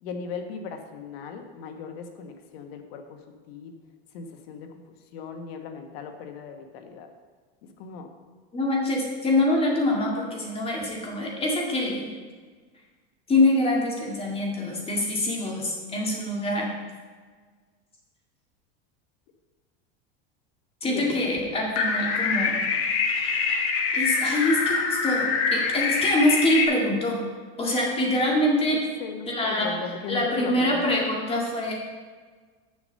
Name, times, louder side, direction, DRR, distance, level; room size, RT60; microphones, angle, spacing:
voice 1, 0.0-3.8 4.1-4.7 5.1-7.1 7.6-8.1 20.8-21.2 28.7-31.0, left 5 dB, 75° left, 5 dB, 1.3 m, -38 dB
voice 2, 8.5-12.1 13.3-16.7 20.8-22.6 23.9-27.2 27.6-28.8 29.3-29.7 30.1-31.7, left 1 dB, 20° left, -1 dB, 2.0 m, -24 dB
sound 1, 21.8-26.6, left 5 dB, 45° left, 1.2 m, -25 dB
7.0 x 6.8 x 6.5 m, 1.5 s
supercardioid pair, 145°, 31 cm